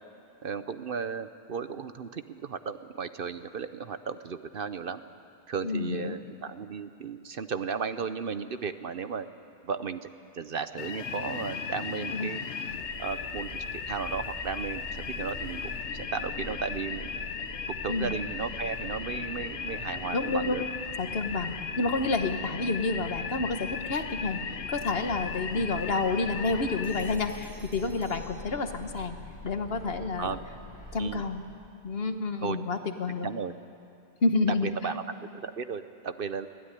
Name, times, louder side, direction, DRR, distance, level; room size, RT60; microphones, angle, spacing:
voice 1, 0.4-5.0 5.5-9.3 9.6-10.1 10.3-12.4 13.0-17.1 17.7-20.6 21.7-21.9 25.6-25.7 30.2-30.4 31.0-31.2 32.4-32.6 33.2-33.5 34.6-36.5, right 6 dB, 55° right, 11 dB, 0.9 m, -35 dB
voice 2, 5.6-6.2 12.1-12.3 17.9-18.1 20.1-20.6 21.0-24.4 24.7-29.2 29.4-30.3 30.9-31.4 31.8-33.3 34.2-34.9, left 3 dB, 60° left, 7 dB, 1.6 m, -29 dB
sound 1, 10.8-27.2, left 6 dB, 85° left, 1.2 m, -37 dB
sound 2, 12.6-31.2, left 1 dB, 75° right, 8.3 m, -45 dB
Bell, 26.8-29.1, right 1 dB, 5° left, 5.6 m, -55 dB
24.0 x 16.5 x 9.9 m, 2.7 s
omnidirectional pair, 1.2 m